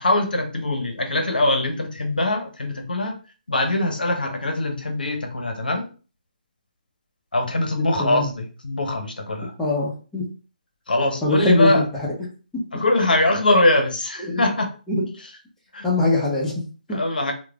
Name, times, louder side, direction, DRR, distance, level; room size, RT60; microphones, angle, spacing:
voice 1, 0.0-3.2 3.5-5.9 7.3-9.5 10.9-11.8 12.7-14.7 15.7-15.9 16.9-17.3, left 2 dB, 85° left, 5 dB, 0.6 m, -22 dB
voice 2, 7.8-8.3 9.6-10.3 11.2-11.8 12.5-12.7 14.3-14.4 14.9-15.1 15.8-17.0, left 2 dB, 5° left, -5 dB, 0.8 m, -22 dB
3.0 x 2.0 x 2.4 m, 0.36 s
figure-of-eight pair, 150°, 5 cm